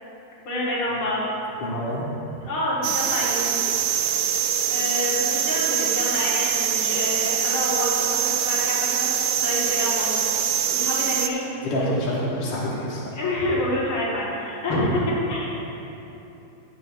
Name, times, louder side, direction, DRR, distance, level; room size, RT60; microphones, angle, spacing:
voice 1, 0.4-1.3 2.4-3.5 4.7-9.1 9.4-10.1 10.7-11.5 13.2-15.5, left 1 dB, 80° left, -7 dB, 2.8 m, -27 dB
voice 2, 1.6-2.1 11.6-13.1, equal, 65° left, -6 dB, 1.8 m, -27 dB
sound 1, 2.8-11.3, right 9 dB, 85° right, 0.8 m, -24 dB
15.5 x 7.8 x 2.6 m, 3.0 s
omnidirectional pair, 2.3 m